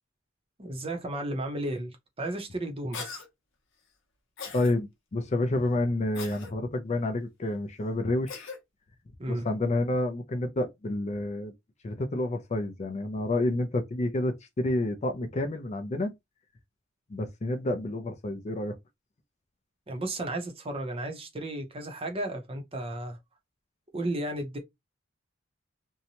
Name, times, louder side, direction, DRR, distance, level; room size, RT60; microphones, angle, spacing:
voice 1, 0.6-3.2 9.2-9.4 19.9-23.2 23.9-24.6, right 1 dB, 30° right, 0.6 m, -34 dB
Cough, 2.9-3.3 4.4-4.7 6.1-6.5 8.3-8.6, left 5 dB, 65° left, 0.7 m, -39 dB
voice 2, 4.5-8.5 9.3-11.5 11.8-16.1 17.1-18.8, left 1 dB, 35° left, 0.4 m, -29 dB
2.7 x 2.1 x 2.8 m
head